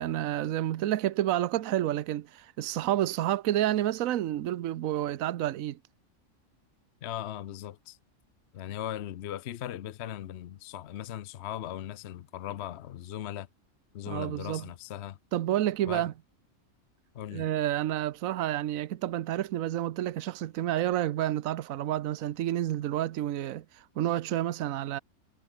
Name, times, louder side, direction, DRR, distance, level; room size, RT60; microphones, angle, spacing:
voice 1, 0.0-5.8 14.1-14.7 15.3-16.1 17.3-25.0, right 13 dB, 80° right, 1.1 m, -29 dB
voice 2, 7.0-8.0 8.5-13.5 13.9-15.2 15.8-16.1 17.1-17.5, left 11 dB, 60° left, 0.8 m, -38 dB
omnidirectional pair, 1.4 m